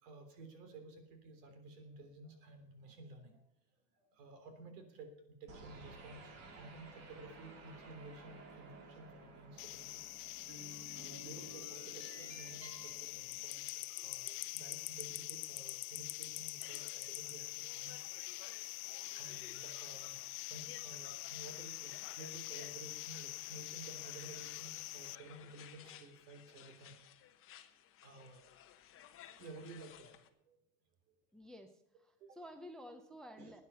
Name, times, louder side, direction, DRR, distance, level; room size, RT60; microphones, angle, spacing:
voice 1, 0.0-3.4 4.0-6.2 6.5-10.0 10.9-18.2 19.1-26.9 28.0-28.4 29.4-30.1 30.5-30.6 32.2-32.4 32.9-33.0 33.4-33.6, right 2 dB, 80° right, 6 dB, 3.6 m, -54 dB
sound 1, 5.5-14.0, right 2 dB, 35° right, 2.1 m, -54 dB
sound 2, 9.6-25.2, left 20 dB, 90° left, 0.6 m, -45 dB
sound 3, 16.6-30.3, left 10 dB, 30° left, 1.0 m, -58 dB
voice 2, 31.3-31.7 32.0-33.6, equal, ahead, 8 dB, 0.5 m, -52 dB
12.0 x 9.6 x 6.8 m, 0.78 s
supercardioid pair, 150°, 46 cm